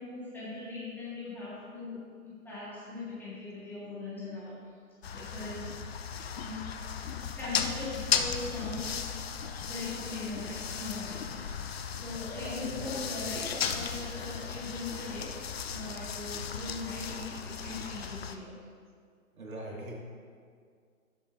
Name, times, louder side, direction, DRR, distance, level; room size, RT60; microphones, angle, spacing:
voice 1, 0.0-4.6 5.1-5.7 6.4-6.7 7.4-9.1 9.6-11.3 12.0-18.6, left 3 dB, 5° left, -10 dB, 1.8 m, -40 dB
sound 1, 5.0-18.4, left 7 dB, 45° left, 0.5 m, -36 dB
voice 2, 12.4-13.0 19.4-19.9, right 1 dB, 70° right, -2 dB, 2.0 m, -41 dB
12.0 x 7.3 x 2.5 m, 2.1 s
figure-of-eight pair, 140°, 43 cm